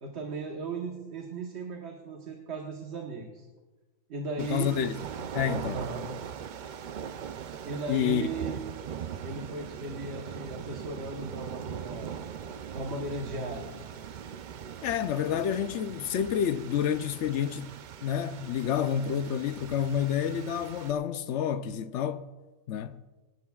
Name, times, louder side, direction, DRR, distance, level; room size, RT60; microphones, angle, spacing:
voice 1, 0.0-3.5 4.1-4.7 5.7-6.1 7.6-8.6 9.2-12.2 12.5-13.7, right 3 dB, 55° right, 1.4 m, -37 dB
voice 2, 4.4-5.8 7.9-8.2 14.8-17.7 18.0-22.3 22.7-23.0, left 9 dB, 65° left, 0.8 m, -29 dB
sound 1, 4.4-20.9, right 8 dB, 80° right, 0.4 m, -40 dB
20.5 x 18.0 x 2.3 m
omnidirectional pair, 1.4 m